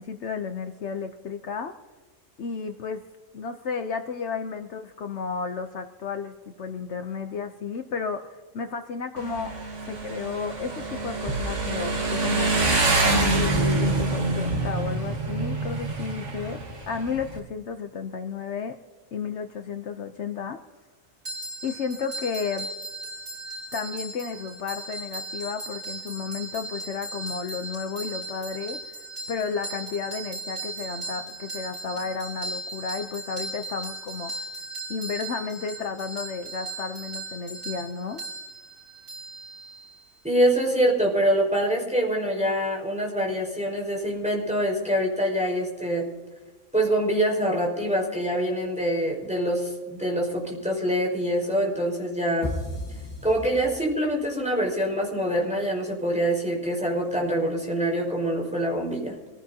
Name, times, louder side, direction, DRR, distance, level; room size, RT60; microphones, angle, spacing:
voice 1, 0.0-1.7 2.4-3.0 3.3-9.5 9.9-12.5 13.1-18.8 19.1-20.6 21.6-22.7 23.7-29.0 29.3-34.4 34.9-38.2, left 5 dB, 65° left, 6 dB, 1.1 m, -32 dB
Motorcycle, 9.2-17.4, right 2 dB, 70° right, 2.1 m, -26 dB
sound 1, 21.2-40.0, right 2 dB, 90° right, 6.1 m, -37 dB
voice 2, 40.2-46.0 46.7-52.5 53.2-59.2, equal, 5° right, -2 dB, 5.0 m, -25 dB
sound 2, 52.4-54.2, left 1 dB, 25° left, 2.0 m, -34 dB
25.5 x 16.0 x 2.8 m, 1.3 s
omnidirectional pair, 1.3 m